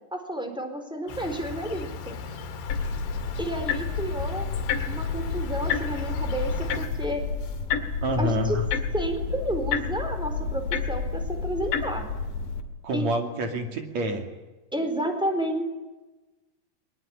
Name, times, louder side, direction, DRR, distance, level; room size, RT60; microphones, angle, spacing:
voice 1, 0.1-2.2 3.4-4.6 4.9-7.2 8.2-8.6 8.9-12.0 12.9-13.1 14.7-15.7, right 1 dB, ahead, 5 dB, 3.6 m, -31 dB
Insect, 1.1-6.9, left 3 dB, 80° left, 4.2 m, -36 dB
sound 1, 2.7-12.6, left 5 dB, 55° left, 3.4 m, -30 dB
voice 2, 8.0-8.6 12.8-14.3, equal, 45° right, 5 dB, 3.4 m, -27 dB
21.0 x 21.0 x 9.9 m, 1.1 s
omnidirectional pair, 4.9 m